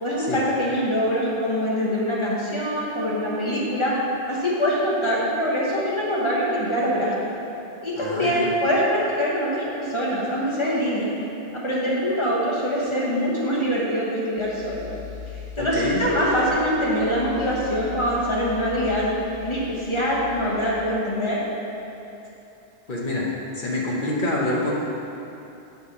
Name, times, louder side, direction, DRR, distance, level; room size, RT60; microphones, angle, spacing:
voice 1, 0.0-3.9 4.3-7.3 7.8-11.1 11.6-14.9 15.6-19.1 19.4-21.4, equal, 25° left, -6 dB, 1.2 m, -24 dB
voice 2, 7.9-8.4 15.6-16.0 22.9-23.3 23.5-24.7, left 1 dB, 50° left, -4 dB, 0.9 m, -26 dB
sound 1, 14.4-20.8, left 6 dB, 85° right, 1.2 m, -39 dB
6.9 x 3.4 x 5.6 m, 2.9 s
omnidirectional pair, 1.1 m